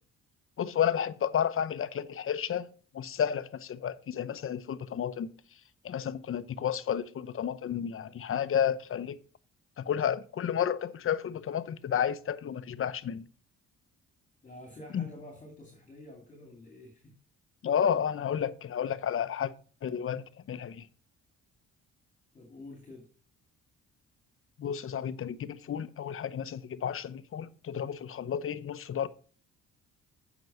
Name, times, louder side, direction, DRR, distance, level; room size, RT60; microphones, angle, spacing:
voice 1, 0.6-2.7 2.9-5.3 5.8-9.2 9.8-13.2 14.9-15.1 17.6-19.5 19.8-20.9 24.6-29.1, left 8 dB, 45° left, 0.7 m, -31 dB
voice 2, 14.4-17.1 22.3-23.1, left 1 dB, 25° left, 2.4 m, -48 dB
7.7 x 6.0 x 5.4 m
cardioid pair, 90°, 30 cm